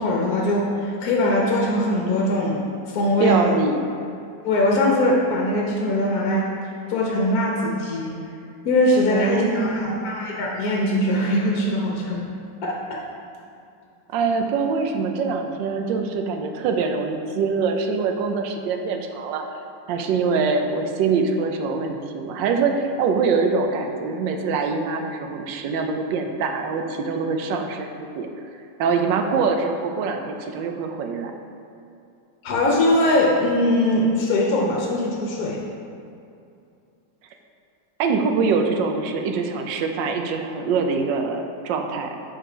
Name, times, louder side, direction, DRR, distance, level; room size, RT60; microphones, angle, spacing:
voice 1, 0.0-2.6 2.9-3.5 4.4-6.5 6.9-8.1 8.6-12.2 12.6-13.0 32.4-35.6, left 1 dB, 60° left, -3 dB, 1.1 m, -21 dB
voice 2, 3.2-3.9 9.1-10.2 14.1-19.5 19.9-28.3 28.8-31.3 38.0-42.1, right 4 dB, 80° right, 4 dB, 1.3 m, -24 dB
5.3 x 4.3 x 4.9 m, 2.6 s
omnidirectional pair, 2.0 m